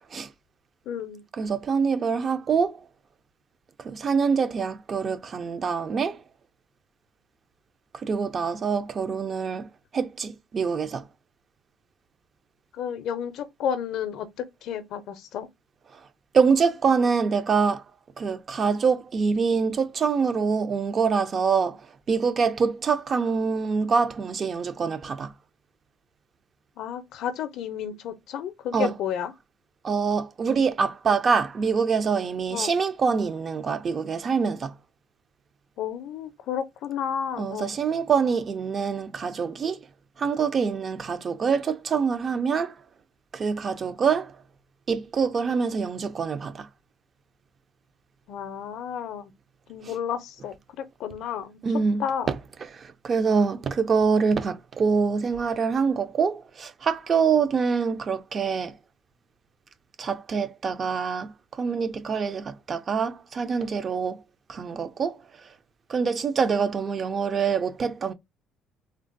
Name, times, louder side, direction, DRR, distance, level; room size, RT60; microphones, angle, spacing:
voice 1, 0.9-1.2 12.7-15.5 26.8-29.3 32.5-32.7 35.8-37.8 48.3-49.3 49.7-51.6 52.0-52.3, left 8 dB, 60° left, 0.4 m, -32 dB
voice 2, 1.4-2.7 3.8-6.2 8.0-11.0 16.3-17.8 18.2-21.8 22.1-25.3 28.7-28.9 29.8-34.7 37.4-39.8 40.2-42.7 43.3-44.3 44.9-46.7 51.6-52.0 53.0-58.7 60.0-61.3 61.6-64.2 64.5-65.2 65.9-68.1, right 5 dB, 30° right, 0.3 m, -25 dB
3.3 x 2.2 x 2.5 m
cardioid pair, 165°, 0 cm